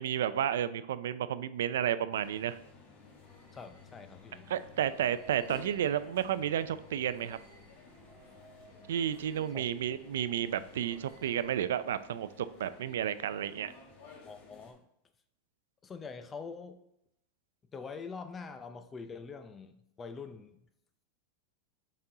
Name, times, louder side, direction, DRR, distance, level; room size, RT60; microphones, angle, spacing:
voice 1, 0.0-2.6 4.5-7.4 8.9-13.7, right 10 dB, 85° right, 14 dB, 0.3 m, -32 dB
sound 1, 2.1-14.7, left 4 dB, 60° left, 1.3 m, -55 dB
sound 2, 2.1-11.8, right 2 dB, 30° right, 1.4 m, -59 dB
voice 2, 3.5-4.5 9.5-9.7 14.3-14.9 15.8-16.8 17.7-20.6, left 5 dB, 15° left, 9 dB, 0.4 m, -44 dB
5.9 x 4.2 x 3.8 m, 0.78 s
supercardioid pair, 155°, 0 cm